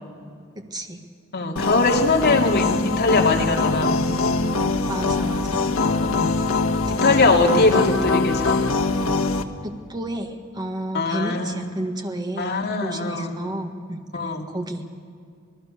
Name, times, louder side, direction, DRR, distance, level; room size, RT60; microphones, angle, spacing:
voice 1, 0.6-1.1 1.8-1.9 4.9-5.7 7.6-8.0 9.6-14.9, right 1 dB, 20° right, 4 dB, 1.7 m, -32 dB
voice 2, 1.3-4.0 6.0-6.4 6.9-8.6 10.9-11.6 12.4-13.3 14.1-14.5, left 3 dB, 50° left, 0 dB, 2.6 m, -21 dB
sound 1, 1.6-9.4, left 3 dB, 75° left, 1.3 m, -22 dB
27.5 x 19.0 x 6.6 m, 2.3 s
head